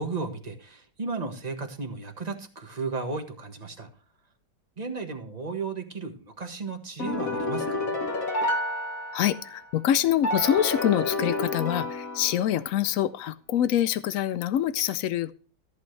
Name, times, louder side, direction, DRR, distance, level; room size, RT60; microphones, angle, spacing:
voice 1, 0.0-3.9 4.8-8.0, right 4 dB, 25° right, 4 dB, 1.3 m, -34 dB
sound 1, 7.0-9.6 10.2-12.7, left 1 dB, 50° left, 1.9 m, -30 dB
voice 2, 9.1-15.3, left 11 dB, 90° left, 15 dB, 0.7 m, -25 dB
14.0 x 8.3 x 3.2 m, 0.40 s
omnidirectional pair, 2.1 m